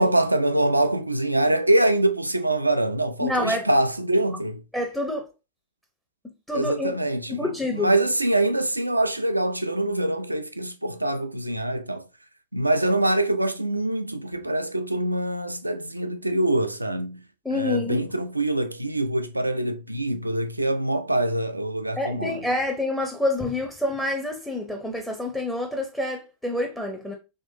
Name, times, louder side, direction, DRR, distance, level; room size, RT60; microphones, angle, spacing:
voice 1, 0.0-4.6 6.5-12.1 12.5-17.2 17.5-22.5, right 1 dB, 85° right, 0.3 m, -24 dB
voice 2, 3.2-3.7 4.7-5.3 6.5-7.0 7.3-7.9 17.4-18.1 22.0-27.1, left 2 dB, 5° left, 0.6 m, -27 dB
3.5 x 3.0 x 2.6 m
figure-of-eight pair, 90°, 0 cm